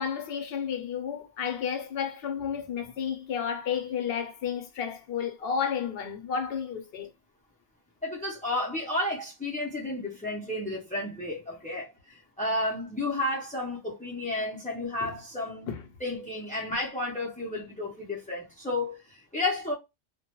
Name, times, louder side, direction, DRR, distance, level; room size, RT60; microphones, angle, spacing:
voice 1, 0.0-7.1 15.7-15.8, left 7 dB, 65° left, 0.8 m, -32 dB
voice 2, 8.0-15.7 16.0-19.7, left 2 dB, 15° left, 0.3 m, -32 dB
2.2 x 2.1 x 2.9 m
omnidirectional pair, 1.2 m